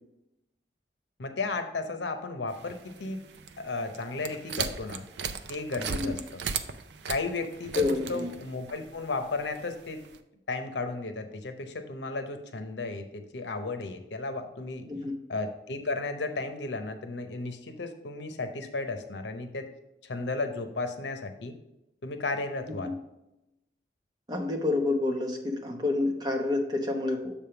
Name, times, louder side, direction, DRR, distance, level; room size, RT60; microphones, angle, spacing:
voice 1, 1.2-3.2 3.6-5.1 5.5-6.4 7.1-10.0 10.5-14.9 15.3-19.7 20.0-21.5 22.0-23.0, left 3 dB, 80° left, 7 dB, 0.8 m, -34 dB
sound 1, 2.5-10.2, right 6 dB, 75° right, 0.5 m, -38 dB
voice 2, 7.7-8.3 14.9-15.2 22.8-22.9 24.3-27.3, left 2 dB, 25° right, 3 dB, 0.9 m, -28 dB
7.2 x 3.5 x 5.7 m, 0.90 s
head